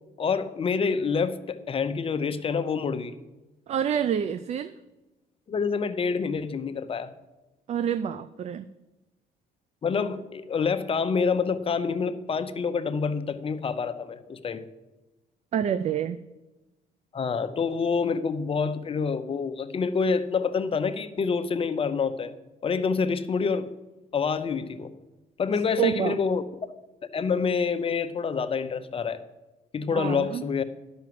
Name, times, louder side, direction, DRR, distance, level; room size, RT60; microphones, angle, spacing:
voice 1, 0.2-3.2 5.5-7.1 9.8-14.6 17.1-22.3 22.6-23.7 24.1-24.9 25.4-26.4 27.1-29.2 29.7-30.6, left 5 dB, 35° left, 10 dB, 0.7 m, -27 dB
voice 2, 3.7-4.7 7.7-8.7 15.5-16.2 25.8-26.2 29.9-30.4, right 9 dB, 40° right, 12 dB, 0.4 m, -27 dB
10.5 x 5.9 x 7.6 m, 1.1 s
cardioid pair, 110°, 17 cm